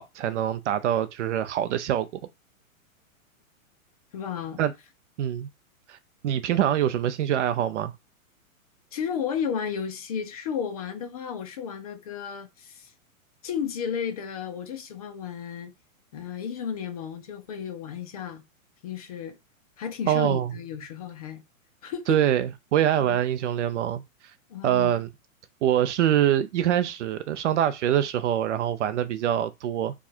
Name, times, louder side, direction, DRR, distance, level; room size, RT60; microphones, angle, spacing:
voice 1, 0.0-2.1 4.6-4.7 5.2-5.5 5.9-6.0 6.2-7.9 20.1-20.5 22.1-24.0 24.6-25.1 25.6-29.9, right 11 dB, 55° right, 0.5 m, -24 dB
voice 2, 4.1-4.6 8.9-12.9 13.4-15.7 16.1-18.4 18.8-19.4 19.8-21.4 21.8-22.2 23.0-23.2 24.5-25.0, left 7 dB, 30° left, 0.4 m, -33 dB
4.7 x 2.3 x 4.3 m
hypercardioid pair, 140°, 42 cm